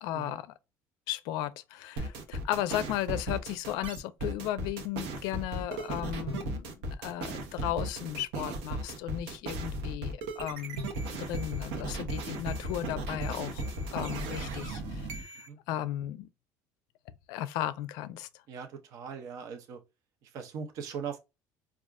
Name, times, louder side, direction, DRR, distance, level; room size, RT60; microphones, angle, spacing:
voice 1, 0.0-0.5 1.1-16.3 17.3-18.3, left 13 dB, 70° left, 0.4 m, -35 dB
sound 1, 2.0-15.5, right 2 dB, 85° right, 0.9 m, -36 dB
voice 2, 18.5-19.8 20.2-21.2, right 6 dB, 50° right, 0.6 m, -40 dB
4.7 x 2.4 x 2.3 m
cardioid pair, 165°, 7 cm